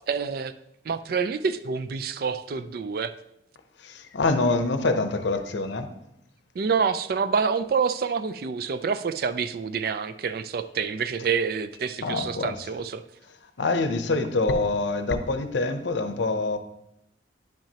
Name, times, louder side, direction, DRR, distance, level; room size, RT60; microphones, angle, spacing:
voice 1, 0.1-0.5 0.9-3.1 6.6-13.0, right 5 dB, 50° right, 12 dB, 0.3 m, -27 dB
voice 2, 3.8-5.9 12.0-12.6 13.6-16.6, left 3 dB, 70° left, 8 dB, 0.7 m, -25 dB
10.0 x 6.0 x 2.8 m, 0.82 s
head